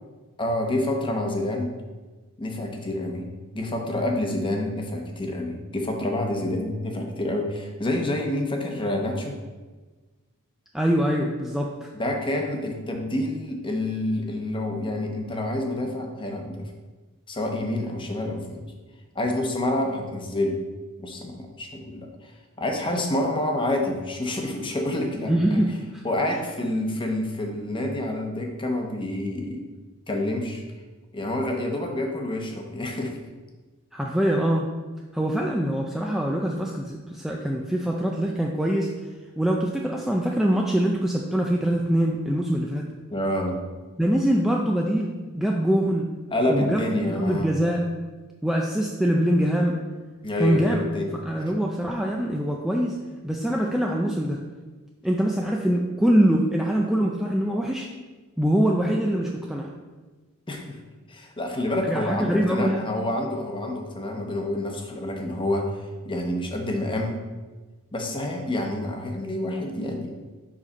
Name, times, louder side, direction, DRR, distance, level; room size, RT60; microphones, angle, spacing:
voice 1, 0.4-1.7 2.4-3.3 3.5-9.4 11.9-16.6 17.3-18.7 19.1-20.6 21.0-22.3 22.6-25.6 26.0-29.6 30.1-30.6 31.1-33.2 43.1-43.6 46.3-47.5 50.2-51.1 60.5-60.8 61.1-67.1 67.9-70.1, left 1 dB, 20° left, 2 dB, 0.8 m, -28 dB
voice 2, 10.7-11.9 25.3-26.0 26.3-26.4 33.9-34.7 35.1-38.9 39.4-42.9 44.0-46.1 46.5-47.8 48.4-49.8 50.4-50.8 51.1-53.0 53.2-54.4 55.0-57.9 58.4-59.7 61.9-62.9, equal, ahead, -1 dB, 0.3 m, -24 dB
5.0 x 4.1 x 5.2 m, 1.3 s
head